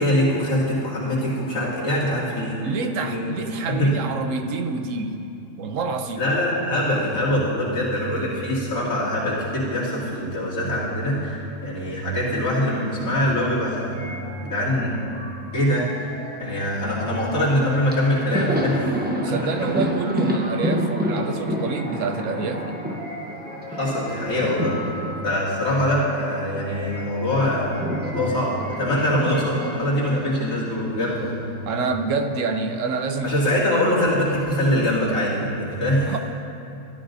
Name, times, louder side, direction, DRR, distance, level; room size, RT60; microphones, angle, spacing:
voice 1, 0.0-2.6 3.0-3.3 3.7-3.9 6.2-14.1 14.4-15.0 15.5-15.9 16.4-18.9 19.2-19.5 23.7-24.7 25.2-31.5 33.2-36.2, left 1 dB, 75° left, -8 dB, 2.9 m, -23 dB
voice 2, 2.6-5.2 5.6-6.3 19.2-22.8 31.7-33.8 36.1-36.2, right 4 dB, 70° right, 6 dB, 1.0 m, -27 dB
sound 1, 13.9-30.1, left 1 dB, 5° left, 2.7 m, -40 dB
Thunder, 17.5-17.6 17.9-26.7 27.0-31.3 31.5-31.7 32.9-33.6, equal, 10° right, 0.7 m, -29 dB
13.5 x 12.5 x 2.6 m, 2.7 s
omnidirectional pair, 1.5 m